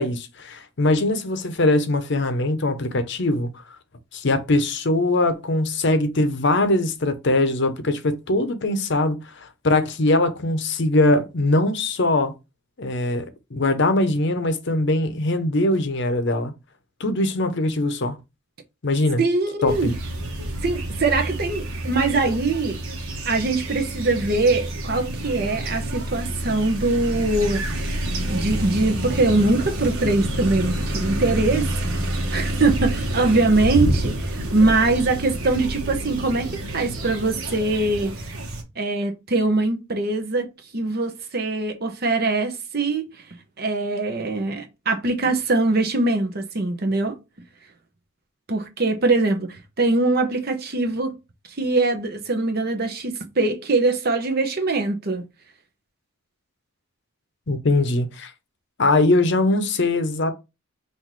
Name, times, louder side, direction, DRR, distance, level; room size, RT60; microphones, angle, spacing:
voice 1, 0.0-3.5 4.1-12.3 12.8-16.5 17.0-18.2 18.8-19.2 19.6-19.9 57.5-58.3 58.8-60.3, left 2 dB, 55° left, 0.7 m, -21 dB
voice 2, 19.2-19.9 20.6-22.8 23.3-38.1 38.8-43.0 43.6-47.1 48.5-51.2 51.6-55.2, right 2 dB, 45° right, 0.8 m, -22 dB
sound 1, 19.7-38.6, right 1 dB, 75° right, 1.1 m, -28 dB
5.7 x 2.6 x 3.1 m
head